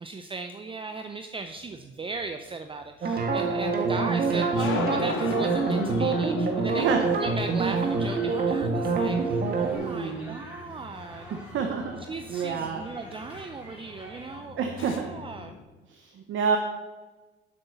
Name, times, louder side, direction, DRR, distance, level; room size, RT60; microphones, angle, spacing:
voice 1, 0.0-11.3 12.1-15.6, right 4 dB, 25° right, 7 dB, 0.6 m, -37 dB
sound 1, 1.6-15.6, left 7 dB, 85° left, 1.0 m, -40 dB
sound 2, 3.0-14.4, equal, 5° right, 3.4 m, -47 dB
sound 3, 3.0-9.7, right 4 dB, 50° right, 1.6 m, -26 dB
voice 2, 9.7-10.4 11.5-12.0 12.3-12.8 14.6-15.0 15.9-16.6, right 6 dB, 75° right, 3 dB, 1.1 m, -28 dB
8.0 x 6.2 x 6.9 m, 1.3 s
cardioid pair, 90°, 20 cm